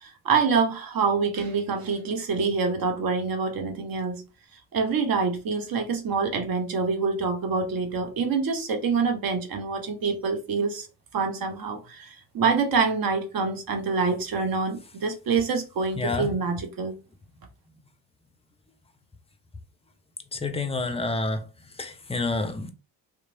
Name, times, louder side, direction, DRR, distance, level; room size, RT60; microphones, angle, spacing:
voice 1, 0.0-4.2 4.7-10.9 11.1-17.0, right 5 dB, 50° right, 0.8 m, -26 dB
voice 2, 16.0-16.3 20.3-21.4 21.8-22.7, left 3 dB, 15° left, 0.5 m, -28 dB
2.9 x 2.1 x 2.6 m
hypercardioid pair, 45°, 46 cm